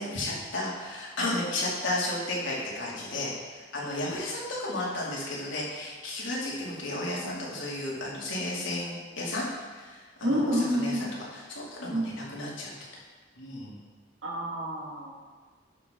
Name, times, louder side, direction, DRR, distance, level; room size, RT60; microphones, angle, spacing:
voice 1, 0.0-9.4 9.7-12.7 13.4-13.7, left 1 dB, 85° left, -5 dB, 2.9 m, -33 dB
voice 2, 10.2-11.1 11.9-12.1 14.2-15.1, equal, 75° right, -4 dB, 2.5 m, -28 dB
11.5 x 6.8 x 3.9 m, 1.5 s
head